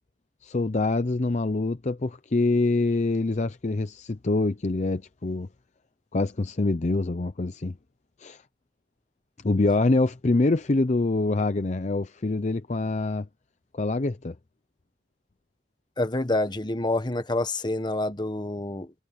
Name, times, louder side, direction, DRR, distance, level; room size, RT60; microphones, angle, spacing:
voice 1, 0.4-5.5 6.1-7.8 8.2-8.4 9.4-13.3 13.7-14.3, left 2 dB, 40° left, 0.6 m, -25 dB
voice 2, 16.0-18.9, left 2 dB, 25° left, 1.2 m, -27 dB
head